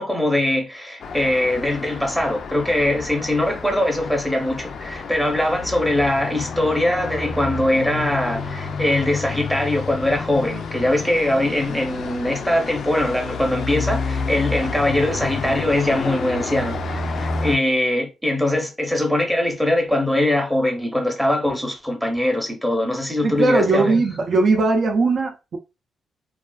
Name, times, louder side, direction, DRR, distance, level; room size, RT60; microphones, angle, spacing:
voice 1, 0.0-24.1, left 1 dB, 5° right, 0.7 m, -22 dB
Traffic noise roadway noise, 1.0-17.6, left 4 dB, 60° left, 0.4 m, -30 dB
voice 2, 23.2-25.6, right 3 dB, 55° right, 0.5 m, -19 dB
2.4 x 2.4 x 2.2 m
cardioid pair, 90°, 0 cm